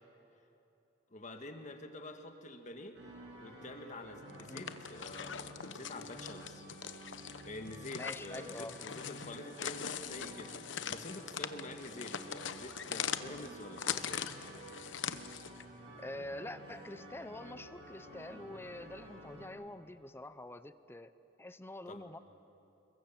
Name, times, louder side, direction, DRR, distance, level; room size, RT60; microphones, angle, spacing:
voice 1, 1.1-3.0 3.4-6.7 7.4-14.3 21.9-22.1, left 2 dB, 40° left, 5 dB, 1.6 m, -47 dB
sound 1, 2.9-19.5, right 1 dB, 70° right, 7.0 m, -52 dB
sound 2, 4.3-15.6, left 8 dB, 90° left, 0.9 m, -42 dB
voice 2, 7.9-8.8 16.0-21.1 21.4-22.2, left 1 dB, 15° left, 13 dB, 0.6 m, -46 dB
28.0 x 22.5 x 7.3 m, 2.9 s
head